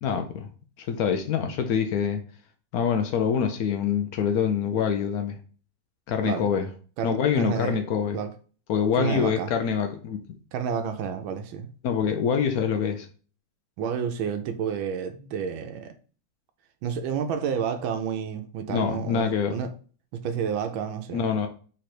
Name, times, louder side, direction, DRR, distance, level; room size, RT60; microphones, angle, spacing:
voice 1, 0.0-0.5 0.8-2.2 2.7-5.4 6.1-6.7 7.0-8.2 8.7-10.2 11.8-13.1 18.7-19.6 21.1-21.5, left 7 dB, 85° left, 0.8 m, -25 dB
voice 2, 7.0-7.8 8.1-8.3 9.0-9.5 10.5-11.7 13.8-15.9 16.8-19.7 20.1-21.3, right 7 dB, 80° right, 1.3 m, -30 dB
3.8 x 3.2 x 4.3 m
omnidirectional pair, 2.2 m